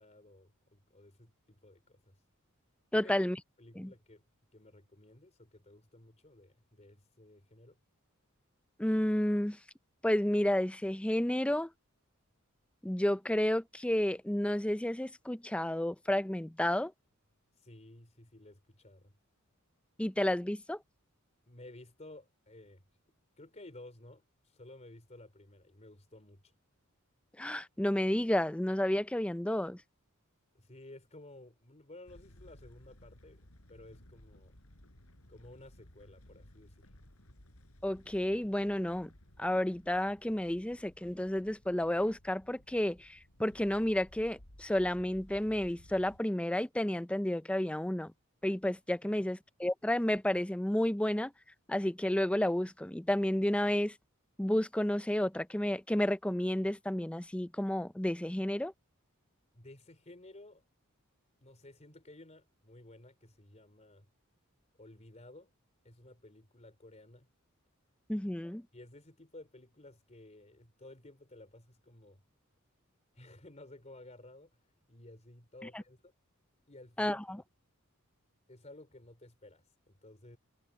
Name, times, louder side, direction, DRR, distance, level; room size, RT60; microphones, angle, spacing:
voice 1, 0.0-2.2 2.9-3.1 3.6-4.2 4.5-7.8 17.6-19.1 21.5-22.8 23.4-26.5 30.5-33.4 33.7-34.6 35.3-36.9 49.0-49.3 59.5-60.7 61.4-64.1 64.8-65.5 65.8-67.3 68.7-72.2 73.1-74.5 74.9-76.1 76.7-77.2 78.5-80.4, left 2 dB, 35° left, 3.6 m, -54 dB
voice 2, 2.9-3.4 3.8-3.9 8.8-9.6 10.0-11.7 12.8-16.9 20.0-20.8 27.4-29.8 37.8-39.1 39.4-48.1 48.4-51.3 51.7-53.9 54.4-58.7 68.1-68.7 75.7-75.8 77.0-77.4, left 1 dB, 5° left, 0.5 m, -31 dB
sound 1, 32.1-46.2, left 1 dB, 80° left, 5.0 m, -58 dB
head